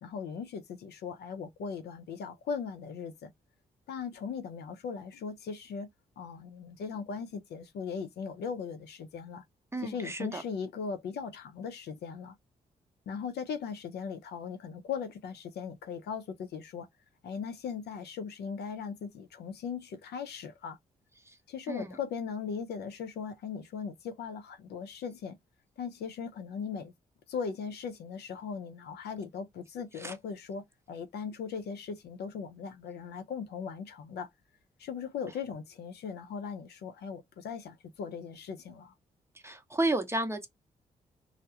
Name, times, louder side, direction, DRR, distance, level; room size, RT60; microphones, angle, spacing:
voice 1, 0.0-3.3 3.9-5.9 6.2-9.4 9.8-12.4 13.1-16.9 17.2-20.8 21.5-25.4 25.8-26.9 27.3-34.3 34.8-38.9, left 6 dB, 70° left, 0.6 m, -38 dB
voice 2, 9.7-10.4 21.3-21.4 21.7-22.0 30.0-30.1 39.4-40.5, right 2 dB, 15° right, 0.7 m, -32 dB
2.2 x 2.0 x 2.7 m
hypercardioid pair, 45°, 18 cm